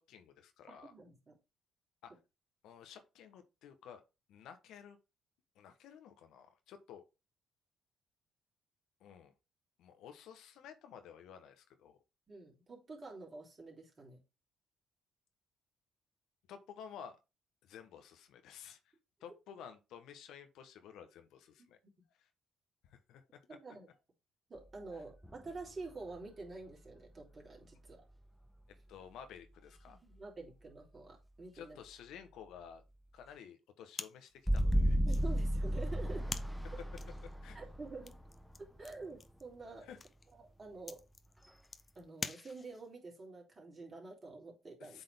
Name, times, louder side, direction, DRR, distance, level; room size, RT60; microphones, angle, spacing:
voice 1, 0.0-0.9 2.0-2.1 2.6-4.0 4.3-5.0 5.6-7.0 9.0-9.3 9.8-12.0 16.5-17.2 17.6-18.8 19.2-21.8 22.2-22.3 22.8-23.4 24.9-25.0 28.7-30.0 31.5-32.8 33.1-35.0 37.4-37.6 39.8-40.0 44.8-45.0, left 8 dB, 70° left, 1.0 m, -53 dB
voice 2, 0.7-1.3 12.3-14.2 21.8-21.9 23.5-23.9 24.5-28.0 29.9-31.8 35.0-36.3 37.5-38.2 38.6-39.9 40.3-41.0 41.9-45.0, right 3 dB, 40° right, 3.3 m, -48 dB
sound 1, 25.2-26.2 27.9-28.0 34.5-39.1, equal, ahead, 0.8 m, -34 dB
sound 2, 33.9-43.0, left 4 dB, 40° left, 0.8 m, -49 dB
8.0 x 3.9 x 3.4 m
hypercardioid pair, 50°, 0 cm